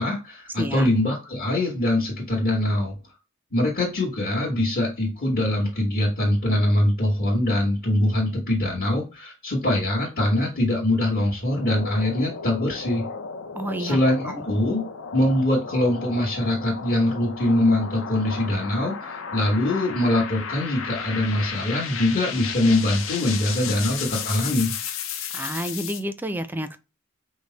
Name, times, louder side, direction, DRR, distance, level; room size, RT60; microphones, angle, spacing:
voice 1, 0.0-2.9 3.5-13.0 13.8-14.8 15.1-24.7, left 1 dB, 45° left, 1.5 m, -23 dB
voice 2, 0.6-0.9 13.5-14.0 14.2-14.5 25.3-26.8, right 1 dB, 10° right, 0.4 m, -30 dB
sound 1, 11.4-26.0, left 6 dB, 75° left, 0.6 m, -34 dB
5.2 x 2.1 x 3.9 m
head